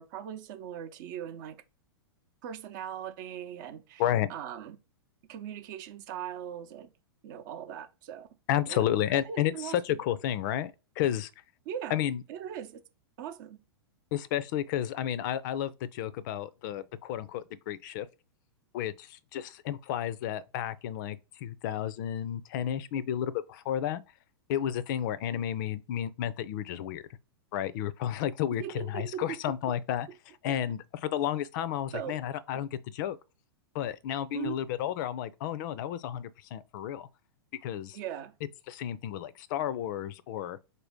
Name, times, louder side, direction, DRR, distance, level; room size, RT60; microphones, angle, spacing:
voice 1, 0.0-1.6 2.4-4.0 4.3-4.8 5.3-6.9 7.2-8.3 8.7-10.0 11.7-12.0 12.3-12.8 13.2-13.6 28.6-29.4 29.7-29.8 31.9-32.2 32.5-32.6 34.3-34.6 37.9-38.3, right 9 dB, 50° right, 0.7 m, -39 dB
voice 2, 4.0-4.3 8.5-11.3 11.9-12.2 14.1-18.1 18.7-24.0 24.5-27.1 27.5-28.6 28.9-30.1 30.4-33.2 33.7-37.1 37.6-38.0 38.7-40.6, left 11 dB, 50° left, 0.4 m, -32 dB
4.1 x 2.7 x 3.4 m
hypercardioid pair, 110°, 13 cm